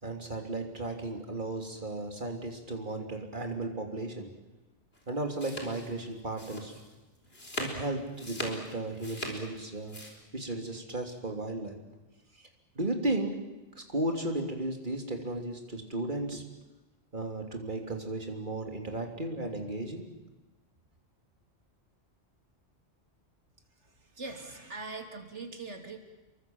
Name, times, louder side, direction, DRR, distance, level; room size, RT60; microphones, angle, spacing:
voice 1, 0.0-4.3 5.1-6.8 7.6-10.0 10.3-11.8 12.3-12.5 12.7-13.3 13.7-16.4 17.1-20.0, right 2 dB, 45° right, 3 dB, 3.3 m, -35 dB
sound 1, 4.9-10.1, left 1 dB, 60° left, 4.7 m, -40 dB
voice 2, 24.2-26.0, right 3 dB, 85° right, 4 dB, 3.4 m, -41 dB
29.5 x 23.5 x 7.3 m, 1.1 s
omnidirectional pair, 1.2 m